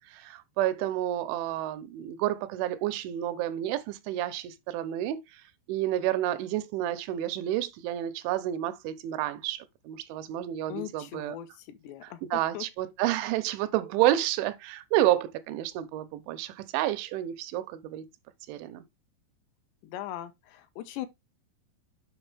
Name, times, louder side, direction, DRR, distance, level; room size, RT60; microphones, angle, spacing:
voice 1, 0.1-5.4 5.7-11.4 12.0-18.1 18.5-18.8, right 13 dB, 85° right, 3.2 m, -30 dB
voice 2, 10.7-12.7 19.8-21.1, left 12 dB, 80° left, 2.8 m, -40 dB
8.1 x 5.6 x 3.4 m
omnidirectional pair, 5.3 m